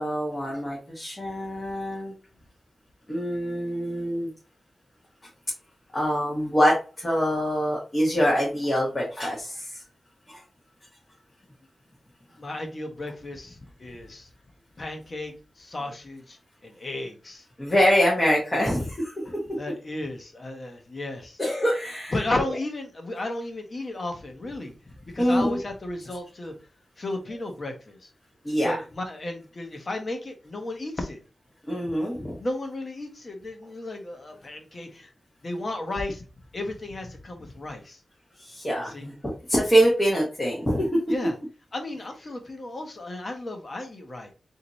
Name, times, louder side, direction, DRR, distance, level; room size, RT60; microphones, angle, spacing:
voice 1, 0.0-2.1 3.1-4.3 5.9-9.8 10.3-10.4 17.6-19.1 21.4-22.2 25.2-25.6 28.4-28.7 31.7-32.4 38.4-39.2 39.5-41.0, equal, 25° left, -4 dB, 1.4 m, -24 dB
voice 2, 12.4-14.3 14.8-15.3 15.6-16.4 16.6-17.4 19.2-21.4 22.1-24.7 25.1-26.5 27.0-28.0 28.6-31.2 32.4-35.1 35.4-36.2 36.5-38.0 38.9-39.1 41.1-41.3 41.7-44.3, left 2 dB, 45° left, 3 dB, 1.0 m, -34 dB
4.1 x 2.8 x 3.1 m, 0.34 s
wide cardioid pair, 95°, 0 cm